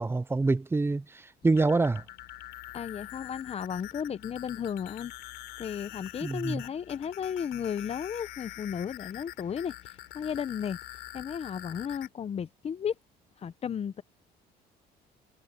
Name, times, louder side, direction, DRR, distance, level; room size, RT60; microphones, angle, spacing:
voice 1, 0.0-2.0 6.2-6.6, right 3 dB, 15° right, 0.6 m, -26 dB
sound 1, 1.4-12.1, left 17 dB, 90° left, 3.8 m, -45 dB
voice 2, 2.7-5.1 5.6-9.7 10.1-10.8 11.1-12.9 13.4-14.0, left 8 dB, 35° left, 0.8 m, -34 dB
cardioid pair, 110°, 17 cm